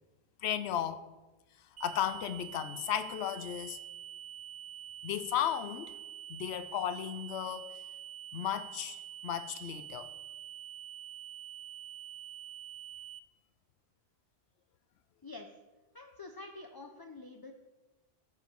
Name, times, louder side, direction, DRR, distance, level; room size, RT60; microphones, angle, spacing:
voice 1, 0.4-1.1 1.8-3.8 5.0-5.9 6.3-7.7 8.3-10.1, left 10 dB, 90° left, 0.8 m, -35 dB
sound 1, 1.8-13.2, right 11 dB, 50° right, 0.4 m, -46 dB
voice 2, 15.2-15.5 15.9-17.5, left 3 dB, 30° left, 0.5 m, -47 dB
14.5 x 4.8 x 4.6 m
omnidirectional pair, 1.1 m